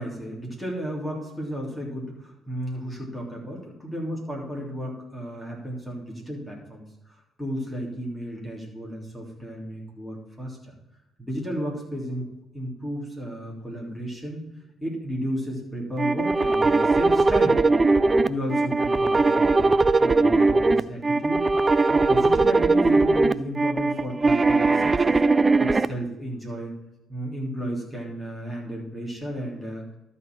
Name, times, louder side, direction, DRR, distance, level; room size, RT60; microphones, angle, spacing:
voice 1, 0.0-10.7 11.2-12.3 12.5-14.4 14.8-17.6 18.1-19.7 20.0-21.6 21.9-25.1 25.6-26.7 27.1-29.8, equal, ahead, -3 dB, 3.1 m, -33 dB
sound 1, 16.0-25.9, right 3 dB, 25° right, 0.4 m, -20 dB
12.5 x 4.2 x 6.2 m, 0.95 s
figure-of-eight pair, 45°, 0 cm